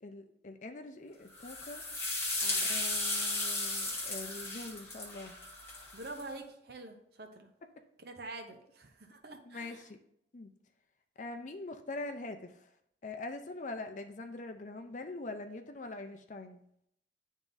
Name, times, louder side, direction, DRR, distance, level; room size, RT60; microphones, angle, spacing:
voice 1, 0.0-1.8 2.6-5.4 9.4-10.0 10.3-10.5 11.2-12.7 13.0-16.6, left 2 dB, 40° left, 6 dB, 0.5 m, -43 dB
sound 1, 1.4-6.2, left 2 dB, 15° left, 1.1 m, -35 dB
voice 2, 5.9-7.5 8.0-9.8, right 2 dB, 55° right, 5 dB, 0.8 m, -46 dB
10.5 x 3.6 x 2.6 m, 0.73 s
head